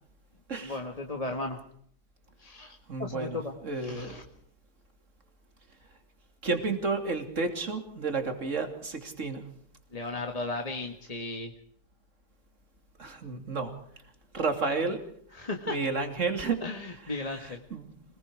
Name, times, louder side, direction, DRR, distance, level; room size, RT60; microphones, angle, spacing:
voice 1, 0.6-1.6 2.4-4.2 9.9-11.5 15.3-15.8 16.6-17.6, left 2 dB, 20° left, 2 dB, 1.7 m, -36 dB
voice 2, 2.9-3.4 3.6-4.2 6.4-9.5 13.0-13.7 14.3-15.1 15.7-16.6 17.1-17.9, right 4 dB, 40° right, 6 dB, 3.1 m, -31 dB
26.5 x 20.5 x 4.8 m, 0.65 s
omnidirectional pair, 2.0 m